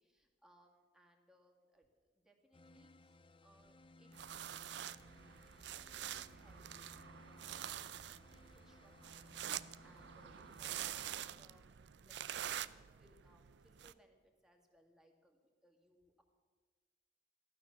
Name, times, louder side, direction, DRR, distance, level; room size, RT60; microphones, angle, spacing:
voice 1, 0.0-3.1 3.4-4.1 4.8-5.3 5.6-16.2, equal, 5° right, 1 dB, 2.0 m, -70 dB
sound 1, 2.5-11.4, left 2 dB, 30° left, 0.5 m, -62 dB
sound 2, 4.1-13.9, right 11 dB, 65° right, 0.5 m, -46 dB
15.5 x 12.0 x 6.6 m, 1.5 s
head